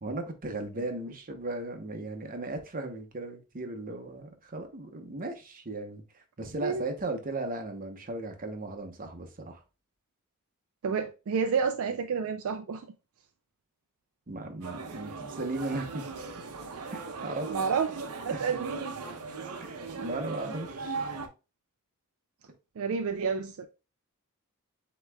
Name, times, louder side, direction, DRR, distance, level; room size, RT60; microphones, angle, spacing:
voice 1, 0.0-9.6 14.3-16.0 16.9-17.7 18.3-18.4 19.6-21.0, right 2 dB, 40° right, 0.9 m, -36 dB
voice 2, 10.8-12.9 17.5-18.9 22.8-23.7, right 5 dB, 65° right, 0.4 m, -30 dB
sound 1, 14.6-21.3, right 4 dB, 90° right, 0.7 m, -38 dB
7.8 x 3.0 x 2.3 m
head